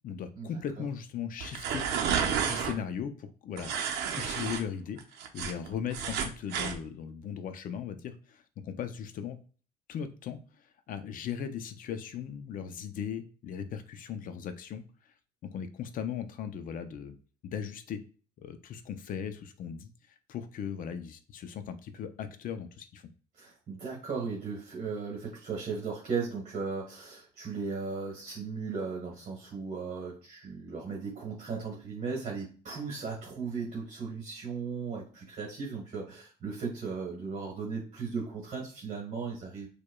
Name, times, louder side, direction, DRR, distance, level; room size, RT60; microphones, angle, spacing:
voice 1, 0.0-1.8 2.2-3.8 4.2-5.0 5.3-9.4 9.9-10.4 10.9-14.8 15.4-17.2 17.4-18.0 18.4-19.9 20.3-23.0, left 8 dB, 55° left, 10 dB, 0.5 m, -38 dB
sound 1, 1.4-2.7 3.6-4.6 5.0-6.8, right 7 dB, 80° right, 0.6 m, -31 dB
voice 2, 23.4-39.7, right 5 dB, 45° right, -3 dB, 1.3 m, -36 dB
4.7 x 2.2 x 2.3 m, 0.39 s
cardioid pair, 110°, 17 cm